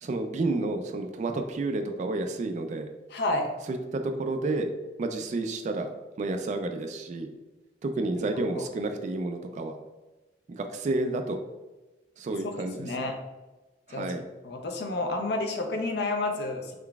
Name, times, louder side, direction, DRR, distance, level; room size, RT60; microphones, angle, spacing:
voice 1, 0.0-2.9 3.7-4.7 5.0-5.9 6.2-7.3 7.8-9.8 10.5-11.4 12.2-13.1 13.9-14.2, right 2 dB, 40° right, 5 dB, 0.3 m, -30 dB
voice 2, 3.1-3.5 8.5-8.6 12.4-13.1 13.9-14.0 14.4-16.7, left 2 dB, 65° left, 3 dB, 0.6 m, -30 dB
3.8 x 3.4 x 2.3 m, 1.1 s
head